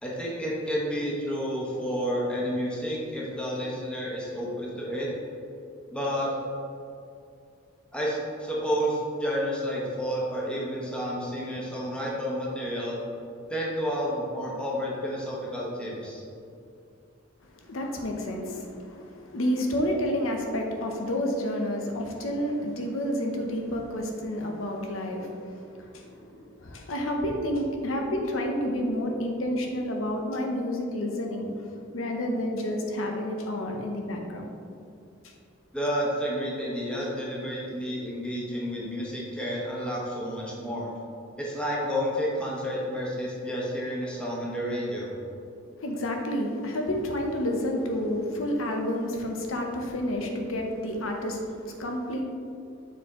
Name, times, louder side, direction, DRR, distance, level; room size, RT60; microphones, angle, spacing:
voice 1, 0.0-5.1 5.9-6.3 7.9-13.0 13.5-16.2 35.7-40.9 41.4-45.1, equal, 5° left, -5 dB, 1.1 m, -30 dB
voice 2, 17.4-31.7 31.9-34.5 45.8-52.2, left 1 dB, 80° left, 2 dB, 0.9 m, -30 dB
6.8 x 4.5 x 3.7 m, 2.5 s
head